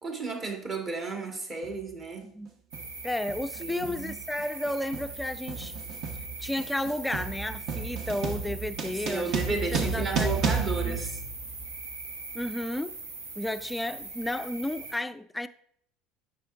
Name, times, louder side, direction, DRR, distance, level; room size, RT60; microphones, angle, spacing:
voice 1, 0.0-2.2 3.6-4.2 8.9-11.2, right 3 dB, 35° right, 1.6 m, -33 dB
sound 1, 1.6-1.8 2.7-3.0 3.3-11.8, right 5 dB, 55° right, 1.1 m, -33 dB
sound 2, 2.7-14.9, right 3 dB, 90° right, 1.1 m, -41 dB
voice 2, 3.0-5.7 6.4-10.3 10.8-11.0 12.3-13.0 13.4-15.5, left 1 dB, 10° left, 0.4 m, -33 dB
7.5 x 5.9 x 2.5 m
hypercardioid pair, 75°, 0 cm